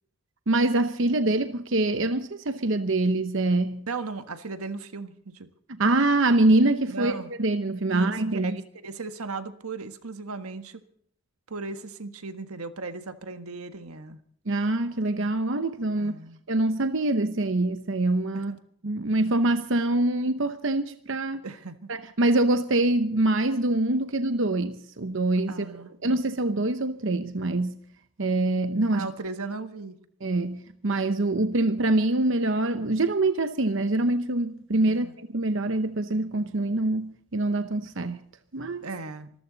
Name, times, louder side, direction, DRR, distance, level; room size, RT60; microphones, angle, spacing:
voice 1, 0.5-3.8 5.7-8.6 14.5-16.1 16.5-18.5 18.8-21.4 21.9-25.5 26.0-27.8 28.2-29.1 30.2-35.1 35.3-38.2 38.5-38.9, right 2 dB, 60° right, 0.9 m, -24 dB
voice 2, 3.9-5.5 6.9-7.3 7.9-8.1 8.4-10.8 11.5-14.2 16.0-16.4 18.3-18.6 21.4-21.9 25.5-25.9 28.9-30.0 34.9-35.1 38.8-39.3, right 3 dB, 90° right, 1.5 m, -36 dB
25.5 x 14.0 x 4.0 m
head